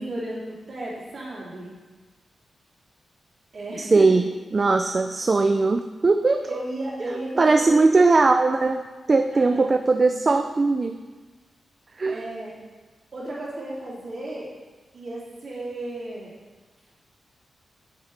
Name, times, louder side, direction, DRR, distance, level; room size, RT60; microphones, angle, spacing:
voice 1, 0.0-1.7 3.5-4.1 6.4-8.0 9.3-9.7 12.1-12.5 13.1-14.5 14.9-16.3, right 1 dB, 50° right, -6 dB, 2.7 m, -34 dB
voice 2, 3.8-6.5 7.4-11.0 12.0-12.2, right 3 dB, 30° right, 7 dB, 0.3 m, -20 dB
10.0 x 7.2 x 3.3 m, 1.3 s
wide cardioid pair, 140°, 0 cm